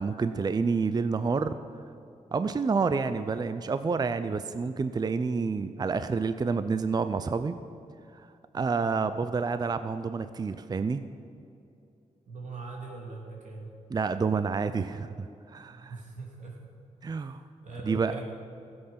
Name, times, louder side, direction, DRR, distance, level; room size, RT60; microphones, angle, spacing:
voice 1, 0.0-1.5 2.3-7.6 8.5-11.0 13.9-15.9 17.0-17.4 17.9-18.1, right 4 dB, 30° right, 11 dB, 0.4 m, -28 dB
voice 2, 8.5-8.9 12.3-13.7 15.9-16.6 17.0-17.3 17.6-18.2, right 3 dB, 70° right, -2 dB, 3.0 m, -41 dB
15.0 x 7.9 x 5.8 m, 2.6 s
cardioid pair, 80°, 13 cm